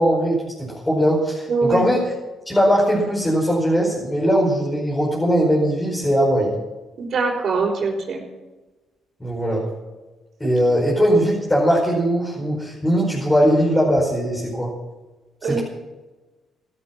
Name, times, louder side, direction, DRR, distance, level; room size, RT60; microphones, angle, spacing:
voice 1, 0.0-2.1 2.4-6.5 9.2-9.6 10.4-14.7 15.4-15.6, equal, 15° left, -4 dB, 5.0 m, -20 dB
voice 2, 1.5-1.9 7.0-8.2 15.4-15.6, right 4 dB, 55° right, -5 dB, 4.3 m, -22 dB
16.5 x 12.0 x 6.0 m, 1.2 s
cardioid pair, 90°, 0 cm